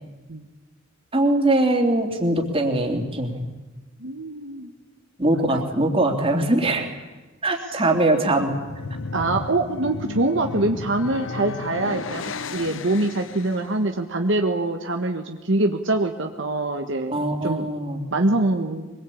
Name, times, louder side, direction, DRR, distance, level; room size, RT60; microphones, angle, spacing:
voice 1, 1.1-3.5 5.2-6.9 7.4-8.5 17.1-18.1, right 1 dB, 30° right, 2 dB, 3.2 m, -21 dB
voice 2, 4.0-4.7 5.3-5.7 9.1-17.6 18.1-18.9, right 2 dB, 65° right, 4 dB, 1.5 m, -24 dB
sound 1, 8.4-13.7, left 3 dB, 70° left, 0.9 m, -34 dB
24.5 x 22.0 x 8.6 m, 1.2 s
head